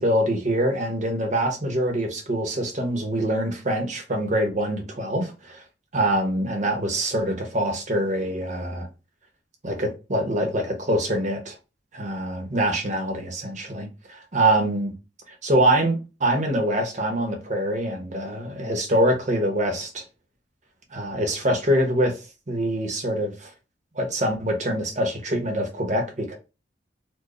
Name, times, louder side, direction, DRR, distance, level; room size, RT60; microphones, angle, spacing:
voice 1, 0.0-5.6 5.9-8.9 9.6-11.6 11.9-14.9 15.3-20.0 20.9-22.2 22.5-23.5 23.9-26.3, right 1 dB, 45° right, 1.1 m, -24 dB
4.6 x 2.3 x 3.1 m
head